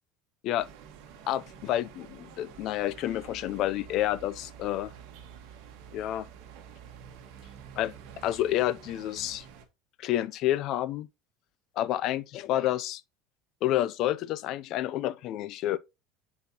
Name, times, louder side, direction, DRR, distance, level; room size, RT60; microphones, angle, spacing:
sound 1, 0.6-9.7, right 8 dB, 55° right, 1.4 m, -49 dB
voice 1, 1.3-4.9 5.9-6.3 7.8-7.9 8.2-9.4 10.0-11.1 11.8-13.0 13.6-15.8, left 13 dB, 40° left, 0.4 m, -29 dB
10.5 x 4.2 x 2.8 m
cardioid pair, 180°, 0 cm